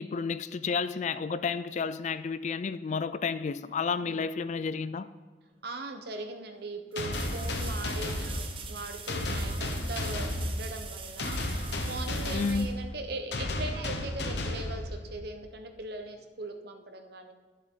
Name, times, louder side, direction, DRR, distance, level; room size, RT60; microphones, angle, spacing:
voice 1, 0.0-5.1 12.3-12.7, left 5 dB, 40° left, 0.3 m, -31 dB
sound 1, 5.5-5.6 6.9-13.5 16.4-16.5, right 6 dB, 30° right, 0.8 m, -44 dB
voice 2, 5.6-17.3, right 2 dB, 65° right, 1.0 m, -40 dB
sound 2, 7.0-15.4, left 1 dB, 75° left, 1.0 m, -33 dB
11.5 x 7.3 x 3.8 m
head